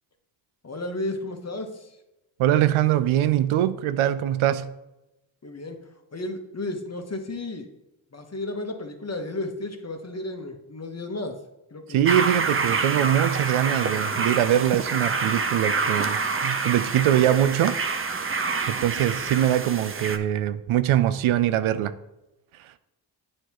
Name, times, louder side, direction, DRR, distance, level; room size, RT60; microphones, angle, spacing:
voice 1, 0.6-2.0 5.4-5.8 6.1-7.7 8.1-11.4 11.7-12.1 12.9-13.1, left 2 dB, 30° left, 5 dB, 1.2 m, -33 dB
voice 2, 2.4-4.7 11.9-17.8 18.7-21.9, right 11 dB, 80° right, 13 dB, 0.5 m, -22 dB
sound 1, 12.1-20.2, right 4 dB, 25° right, 0.6 m, -27 dB
9.0 x 4.3 x 3.0 m, 0.95 s
supercardioid pair, 45°, 49 cm